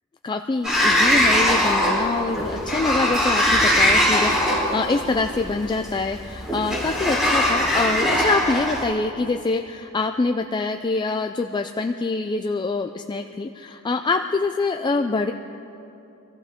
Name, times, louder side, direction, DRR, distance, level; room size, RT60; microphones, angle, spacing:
voice 1, 0.2-15.3, left 3 dB, 20° left, 6 dB, 0.3 m, -25 dB
Sliding door, 0.6-8.8, equal, 5° right, 4.2 m, -21 dB
24.5 x 14.5 x 3.6 m, 2.9 s
head